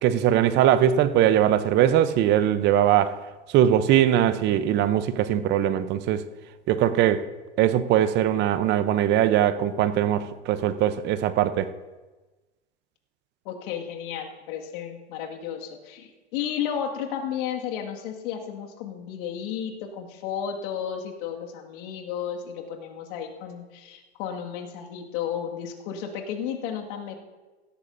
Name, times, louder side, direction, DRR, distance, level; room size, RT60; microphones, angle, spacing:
voice 1, 0.0-3.2 3.5-6.2 6.7-7.2 7.6-11.7, right 11 dB, 30° right, 0.7 m, -21 dB
voice 2, 13.5-27.2, left 8 dB, 50° left, 2.0 m, -33 dB
17.0 x 13.0 x 2.6 m
hypercardioid pair, 115°, 33 cm